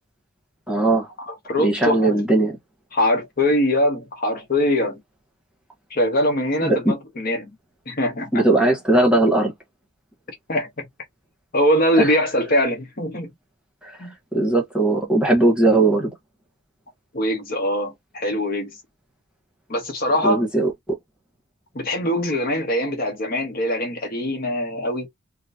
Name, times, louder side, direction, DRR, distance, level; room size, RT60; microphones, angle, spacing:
voice 1, 0.7-1.1 1.6-2.6 6.6-6.9 8.3-9.5 12.0-12.1 13.8-14.0 14.3-16.1 20.2-21.0, right 2 dB, 5° right, 1.1 m, -19 dB
voice 2, 1.2-2.2 2.9-5.0 5.9-7.5 7.9-8.4 10.5-10.9 11.5-13.3 14.0-14.1 17.1-18.7 19.7-20.4 21.7-25.1, left 1 dB, 45° left, 1.0 m, -22 dB
3.8 x 2.1 x 2.6 m
head